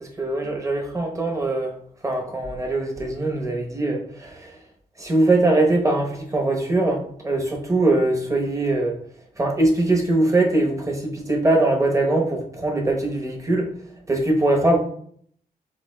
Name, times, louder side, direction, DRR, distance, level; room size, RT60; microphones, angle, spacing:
voice 1, 0.0-1.7 2.0-4.6 5.0-9.0 9.4-13.7 14.1-14.8, right 2 dB, 20° right, 0 dB, 0.9 m, -22 dB
7.8 x 2.8 x 2.2 m, 0.62 s
cardioid pair, 95°, 16 cm